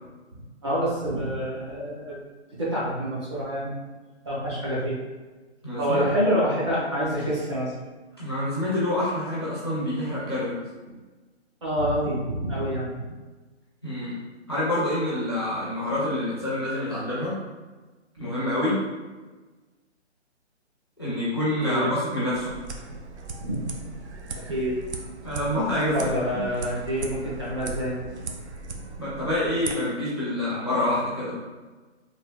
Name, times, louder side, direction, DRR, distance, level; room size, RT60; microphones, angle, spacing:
voice 1, 0.3-2.2 2.6-3.7 4.2-5.0 5.8-7.7 11.6-13.1 18.2-18.4 21.6-22.0 23.4-23.6 24.3-24.7 25.9-28.0, equal, 25° right, -7 dB, 0.6 m, -27 dB
voice 2, 5.6-6.1 8.2-10.6 13.8-14.2 14.5-17.4 18.2-18.8 21.0-22.5 25.2-26.4 29.0-31.4, left 1 dB, 25° left, -10 dB, 0.4 m, -27 dB
sound 1, 22.3-29.7, right 3 dB, 70° right, 0.5 m, -37 dB
3.2 x 2.5 x 2.2 m, 1.2 s
hypercardioid pair, 160°, 35 cm